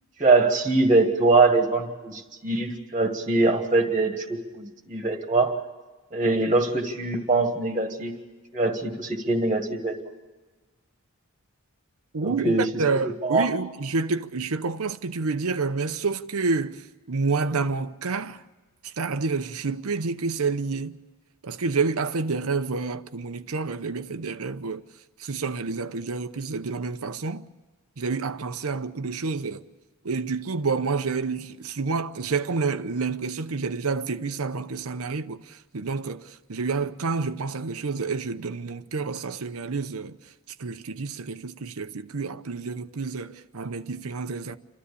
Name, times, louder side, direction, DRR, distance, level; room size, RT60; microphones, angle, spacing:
voice 1, 0.2-5.6 6.1-8.1 8.5-9.9 12.2-12.6 13.2-13.5, right 3 dB, 25° right, 1.7 m, -23 dB
voice 2, 12.1-18.4 18.8-21.0 21.4-24.8 25.2-27.4 28.0-29.6 30.0-40.2 40.6-44.6, right 4 dB, 80° right, 0.8 m, -29 dB
28.5 x 13.0 x 8.3 m
head